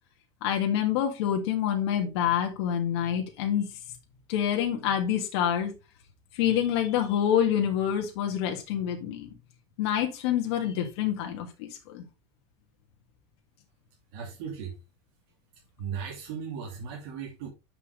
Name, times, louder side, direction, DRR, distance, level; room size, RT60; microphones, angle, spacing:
voice 1, 0.4-3.7 4.3-5.7 6.3-9.3 9.8-12.0, left 9 dB, 80° left, 1.7 m, -27 dB
voice 2, 14.1-14.8 15.8-17.5, right 7 dB, 60° right, 2.6 m, -37 dB
7.1 x 5.5 x 3.7 m
cardioid pair, 175°, 14 cm